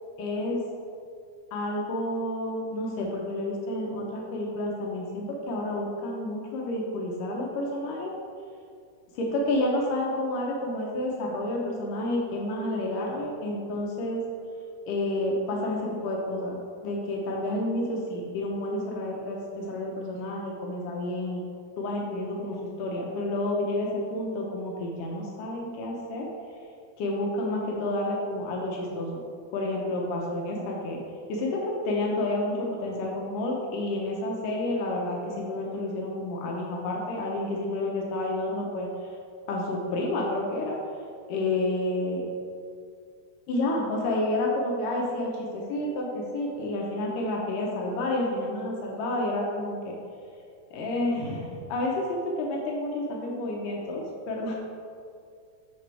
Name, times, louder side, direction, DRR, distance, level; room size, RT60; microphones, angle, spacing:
voice 1, 0.2-0.6 1.5-8.1 9.3-14.2 14.9-21.4 21.8-26.3 27.0-29.2 29.5-31.0 31.3-38.9 39.5-40.8 41.3-42.3 43.5-50.0 50.7-54.6, left 1 dB, 85° left, -2 dB, 2.5 m, -30 dB
10.0 x 5.0 x 3.3 m, 2.3 s
omnidirectional pair, 3.7 m